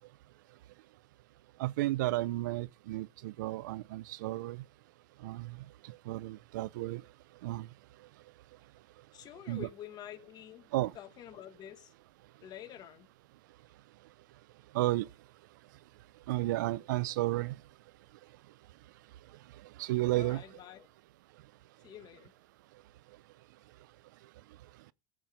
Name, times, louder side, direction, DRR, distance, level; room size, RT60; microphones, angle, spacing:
voice 1, 1.6-4.6 5.2-5.6 6.1-7.0 7.4-7.7 9.5-9.7 10.7-10.9 14.7-15.1 16.3-17.6 19.8-20.4, right 17 dB, 85° right, 0.5 m, -32 dB
voice 2, 9.1-10.7 10.9-11.9 12.4-13.1 20.2-20.9 21.8-22.3, left 11 dB, 45° left, 1.2 m, -48 dB
14.0 x 7.5 x 5.0 m
supercardioid pair, 110°, 10 cm